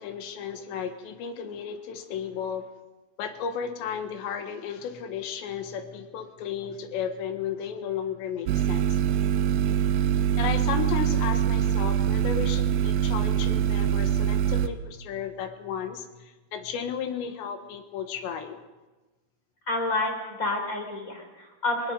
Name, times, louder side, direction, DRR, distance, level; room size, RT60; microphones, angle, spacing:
voice 1, 0.0-2.7 3.2-9.0 10.4-18.6, left 8 dB, 75° left, 7 dB, 3.6 m, -34 dB
sound 1, 8.5-14.7, right 9 dB, 75° right, 2.6 m, -24 dB
voice 2, 19.7-20.1 20.4-21.9, left 2 dB, 20° left, 3 dB, 3.9 m, -28 dB
23.5 x 21.0 x 5.3 m, 1.2 s
omnidirectional pair, 5.3 m